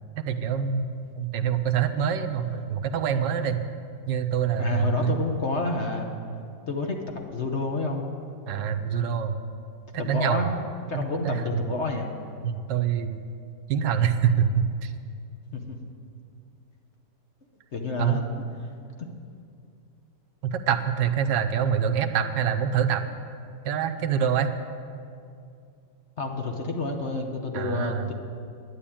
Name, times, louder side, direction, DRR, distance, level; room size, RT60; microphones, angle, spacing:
voice 1, 0.2-3.6 4.1-5.1 8.5-9.4 9.9-10.5 10.9-11.4 12.4-13.2 13.7-14.9 18.0-18.2 20.4-23.0 23.6-24.5 27.5-28.1, right 8 dB, 80° right, 8 dB, 1.4 m, -25 dB
voice 2, 4.6-6.1 6.7-7.0 7.3-8.0 10.0-10.6 10.9-12.1 15.5-15.8 17.7-18.3 19.0-19.1 26.2-28.1, left 3 dB, 45° left, 2 dB, 1.1 m, -29 dB
10.0 x 9.9 x 8.6 m, 2.4 s
omnidirectional pair, 1.9 m